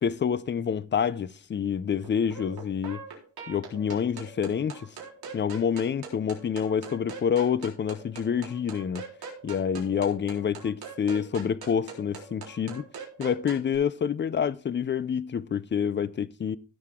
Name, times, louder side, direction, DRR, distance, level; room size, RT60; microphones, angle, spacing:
voice 1, 0.0-3.0 3.5-4.9 5.3-9.0 9.4-12.9 13.2-16.6, left 7 dB, 25° left, 0.4 m, -27 dB
sound 1, 2.0-13.7, right 5 dB, 55° right, 4.0 m, -43 dB
16.5 x 6.6 x 3.6 m
cardioid pair, 140°, 45 cm